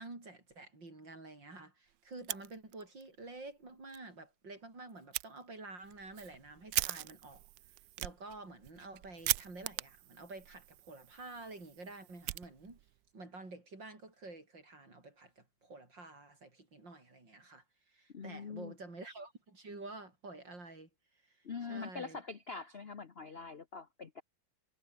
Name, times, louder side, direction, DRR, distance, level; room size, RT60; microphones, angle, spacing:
voice 1, 0.0-7.5 8.0-12.8 13.1-20.9 21.3-21.4 21.7-22.2, right 2 dB, 55° right, 6.7 m, -49 dB
Fire, 2.1-3.1 3.4-3.5 3.9-4.0 5.1-5.3 5.8-13.0, right 17 dB, 75° right, 1.0 m, -40 dB
voice 2, 18.1-18.7 21.4-24.2, left 5 dB, 40° left, 0.9 m, -44 dB
omnidirectional pair, 2.4 m